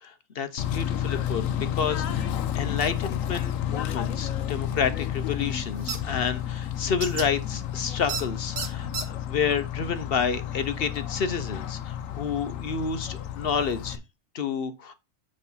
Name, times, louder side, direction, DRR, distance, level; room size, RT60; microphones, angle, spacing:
voice 1, 0.0-1.4 1.7-2.3 2.5-14.0 14.3-14.9, left 6 dB, 55° left, 0.8 m, -29 dB
Bird / Train, 0.6-14.0, left 10 dB, 80° left, 1.1 m, -31 dB
sound 1, 5.9-6.0 7.0-7.3 8.1-8.2 8.6-9.1, right 6 dB, 60° right, 1.4 m, -31 dB
8.2 x 3.2 x 5.5 m
omnidirectional pair, 1.4 m